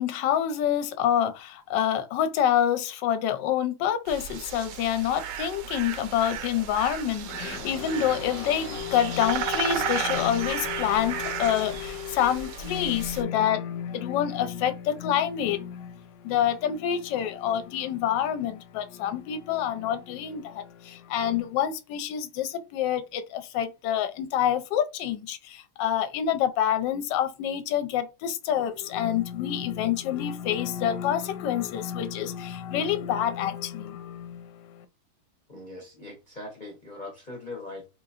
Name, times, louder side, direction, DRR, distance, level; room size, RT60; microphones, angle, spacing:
voice 1, 0.0-34.8, left 10 dB, 70° left, 1.1 m, -27 dB
sound 1, 4.1-13.2, right 9 dB, 75° right, 1.0 m, -34 dB
voice 2, 35.5-37.9, left 2 dB, 35° left, 0.7 m, -40 dB
3.9 x 2.9 x 2.5 m
omnidirectional pair, 2.3 m